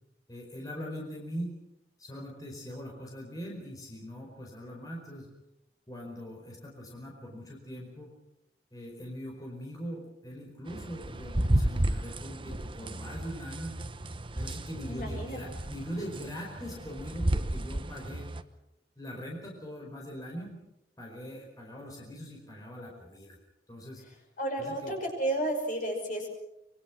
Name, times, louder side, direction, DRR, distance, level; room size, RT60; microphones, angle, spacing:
voice 1, 0.3-1.5 2.0-5.3 5.9-8.1 8.7-13.7 14.3-18.3 19.0-20.6 21.0-23.4 23.7-24.0 24.6-24.9, equal, 20° left, -1 dB, 4.8 m, -41 dB
sound 1, 10.7-18.4, right 1 dB, 30° right, 1.0 m, -33 dB
voice 2, 14.9-15.4 24.4-26.3, right 1 dB, 50° left, 3 dB, 5.9 m, -32 dB
25.5 x 24.0 x 6.1 m, 0.87 s
head